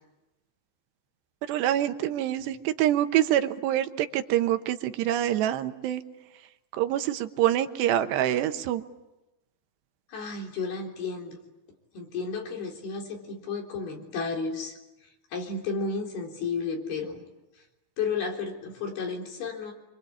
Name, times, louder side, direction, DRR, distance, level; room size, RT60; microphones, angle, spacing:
voice 1, 1.5-6.0 6.7-8.8, right 12 dB, 90° right, 8 dB, 3.3 m, -26 dB
voice 2, 10.1-11.4 11.9-14.8 15.3-17.2 18.0-19.7, left 4 dB, 65° left, 1 dB, 5.7 m, -32 dB
27.0 x 25.0 x 8.6 m, 1.0 s
omnidirectional pair, 4.8 m